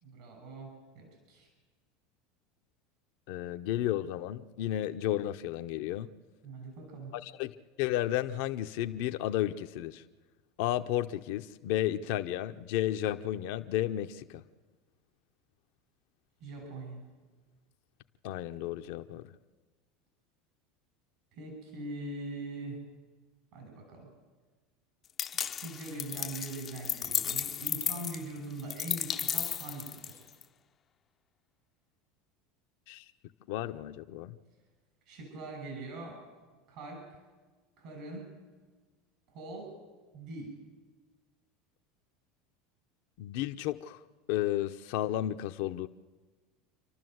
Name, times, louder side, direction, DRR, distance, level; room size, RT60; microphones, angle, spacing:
voice 1, 0.0-1.5 6.4-7.1 16.4-17.0 21.3-22.8 23.5-24.1 25.5-30.3 35.1-36.2 36.7-37.1 37.8-38.3 39.3-39.7 40.1-40.5, right 2 dB, 65° right, 6.5 m, -42 dB
voice 2, 3.3-6.1 7.1-7.5 7.8-10.0 10.6-14.4 18.2-19.3 32.9-33.1 33.5-34.4 43.2-44.0 44.3-45.9, left 13 dB, 70° left, 0.7 m, -32 dB
sound 1, 25.2-30.4, left 8 dB, 35° left, 0.5 m, -34 dB
28.0 x 12.5 x 7.9 m
supercardioid pair, 100°, 0 cm